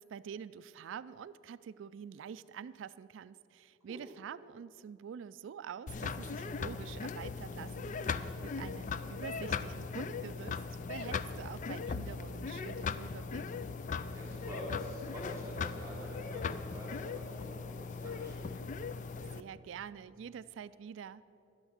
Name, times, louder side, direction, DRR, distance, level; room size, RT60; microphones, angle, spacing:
voice 1, 0.0-10.6 10.9-13.4 19.3-21.2, right 7 dB, 75° right, 16 dB, 0.3 m, -46 dB
sound 1, 5.9-19.4, left 5 dB, 40° left, 0.4 m, -39 dB
voice 2, 14.1-18.6, right 1 dB, 15° right, -7 dB, 3.1 m, -47 dB
12.5 x 9.9 x 6.3 m, 2.8 s
head